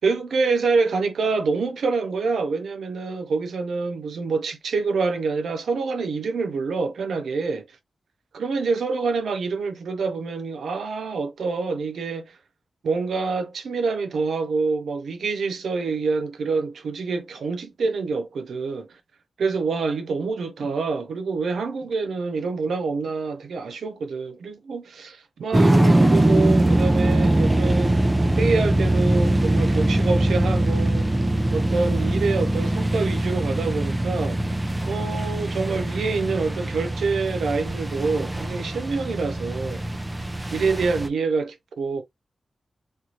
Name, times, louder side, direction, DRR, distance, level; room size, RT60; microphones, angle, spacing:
voice 1, 0.0-7.7 8.3-12.3 12.8-18.9 19.4-28.0 28.4-31.1 31.5-34.4 34.9-39.8 40.5-42.0, right 4 dB, 90° right, 0.6 m, -26 dB
sound 1, 25.5-41.1, right 1 dB, 20° right, 0.6 m, -22 dB
3.3 x 2.9 x 2.5 m
cardioid pair, 75°, 0 cm